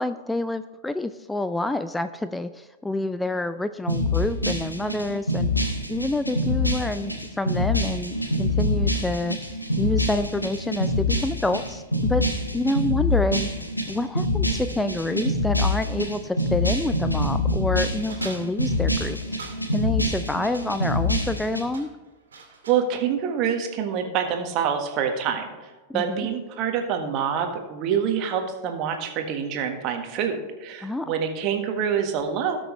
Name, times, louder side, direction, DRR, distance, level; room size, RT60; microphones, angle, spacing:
voice 1, 0.0-5.5 5.9-12.2 12.5-13.5 13.9-19.4 19.7-21.9 25.9-26.3 30.8-31.1, left 2 dB, 5° left, 11 dB, 0.4 m, -28 dB
sound 1, 3.9-21.6, left 1 dB, 85° left, 1.3 m, -25 dB
sound 2, 18.1-19.6 21.1-21.4 21.7-22.9, right 5 dB, 70° right, 2.3 m, -43 dB
voice 2, 22.7-32.6, right 7 dB, 40° right, 5 dB, 1.5 m, -26 dB
18.5 x 6.2 x 3.3 m, 1.2 s
figure-of-eight pair, 90°, 0 cm